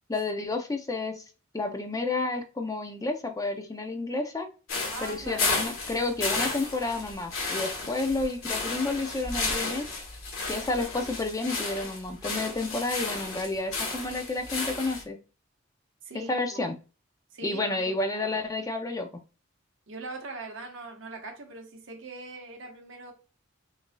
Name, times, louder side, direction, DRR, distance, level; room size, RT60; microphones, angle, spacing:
voice 1, 0.1-1.2 1.5-4.5 5.0-9.9 10.5-15.2 16.3-16.8 17.4-19.1, left 2 dB, 15° left, 0.4 m, -30 dB
sound 1, 4.7-15.0, left 3 dB, 75° left, 1.5 m, -33 dB
voice 2, 4.9-5.5 16.0-16.6 17.3-18.4 19.9-23.1, right 3 dB, 65° right, 1.0 m, -41 dB
5.9 x 2.6 x 2.2 m
head